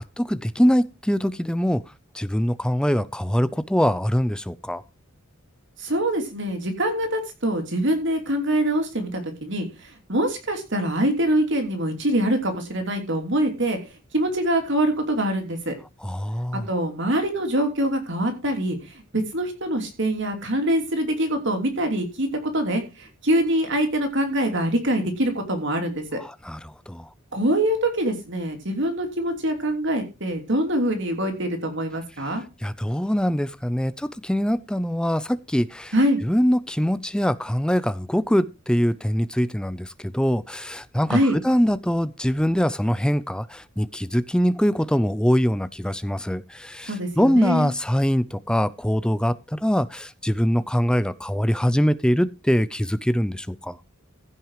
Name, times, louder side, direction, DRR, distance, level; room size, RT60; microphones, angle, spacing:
voice 1, 0.0-1.8 2.1-4.8 16.0-16.7 26.2-26.6 26.9-27.1 32.6-35.9 36.2-53.8, equal, 5° left, 0.5 m, -23 dB
voice 2, 5.8-9.7 10.1-13.8 14.1-15.7 16.7-18.8 19.1-26.2 27.3-32.4 35.9-36.2 41.1-41.3 46.8-47.7, right 1 dB, 60° right, 3.1 m, -24 dB
15.5 x 6.2 x 4.9 m
head